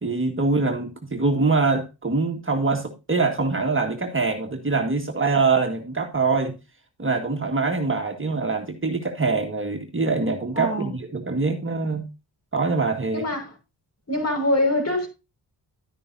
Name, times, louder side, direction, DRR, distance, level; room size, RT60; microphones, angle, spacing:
voice 1, 0.0-6.6 7.0-12.1 12.5-13.3, right 4 dB, 30° right, 1.6 m, -24 dB
voice 2, 10.6-10.9 13.1-13.5 14.1-15.1, left 1 dB, 35° left, 5.4 m, -24 dB
11.5 x 9.2 x 2.7 m
cardioid pair, 70°, 43 cm